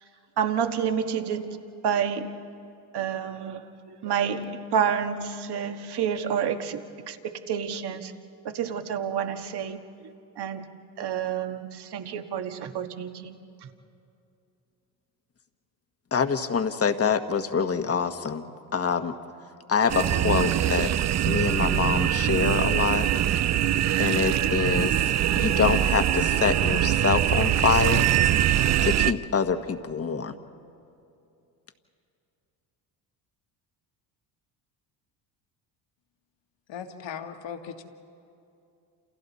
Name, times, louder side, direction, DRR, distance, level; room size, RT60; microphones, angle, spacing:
voice 1, 0.4-1.6 1.8-2.3 2.9-8.1 8.4-9.8 10.4-10.7 11.0-13.3 13.6-13.7, right 8 dB, 50° right, 6 dB, 1.7 m, -29 dB
voice 2, 16.1-18.4 18.7-19.1 19.7-20.9 21.2-23.1 24.0-25.0 25.4-28.1 28.8-30.3, left 6 dB, 30° left, 8 dB, 1.4 m, -25 dB
sound 1, 19.9-29.1, right 11 dB, 35° right, 0.5 m, -23 dB
voice 3, 36.7-37.8, left 7 dB, 60° left, 5 dB, 2.0 m, -38 dB
28.5 x 28.5 x 4.2 m, 2.6 s
supercardioid pair, 75°, 50 cm